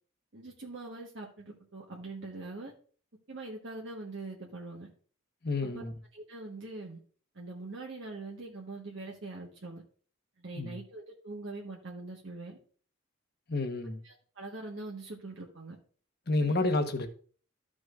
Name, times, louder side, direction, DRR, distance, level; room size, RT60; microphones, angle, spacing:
voice 1, 0.3-2.7 3.3-4.9 5.6-5.8 6.1-7.0 7.3-9.8 10.4-12.6 14.0-15.8 16.4-16.5, right 2 dB, 60° right, 1.3 m, -43 dB
voice 2, 5.4-5.9 10.5-10.8 13.5-14.0 16.3-17.1, left 2 dB, 50° left, 1.1 m, -29 dB
13.5 x 6.2 x 2.5 m
head